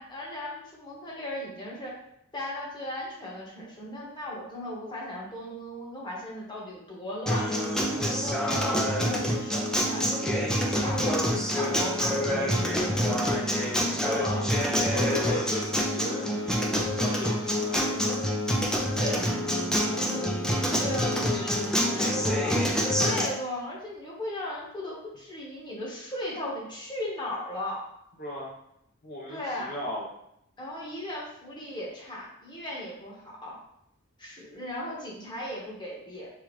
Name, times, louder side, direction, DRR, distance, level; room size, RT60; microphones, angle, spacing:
voice 1, 0.0-2.0 2.3-7.5 8.2-14.5 18.9-19.7 19.9-20.4 20.8-27.9 29.3-29.8 30.6-33.6 34.2-36.3, left 1 dB, 20° left, -4 dB, 1.2 m, -37 dB
Acoustic guitar, 7.3-23.3, equal, 5° left, 0.5 m, -26 dB
voice 2, 14.8-18.1 19.7-20.1 28.2-28.5 29.0-29.4 29.7-30.1, left 1 dB, 45° left, -5 dB, 0.8 m, -36 dB
6.9 x 2.4 x 3.1 m, 0.76 s
head